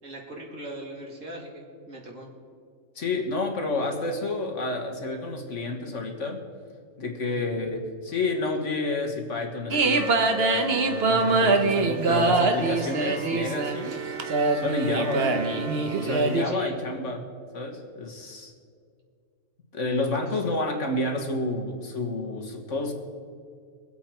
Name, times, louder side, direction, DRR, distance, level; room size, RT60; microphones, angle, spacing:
voice 1, 0.0-2.3 7.2-7.5 16.4-16.7, equal, 70° right, -2 dB, 2.9 m, -39 dB
voice 2, 3.0-6.5 7.0-14.0 14.5-15.3 16.0-17.3 17.5-18.5 19.7-22.9, left 2 dB, 65° left, 2 dB, 1.9 m, -30 dB
sound 1, 9.7-16.4, right 3 dB, 50° right, 1.2 m, -24 dB
23.5 x 8.2 x 4.5 m, 2.2 s
omnidirectional pair, 1.4 m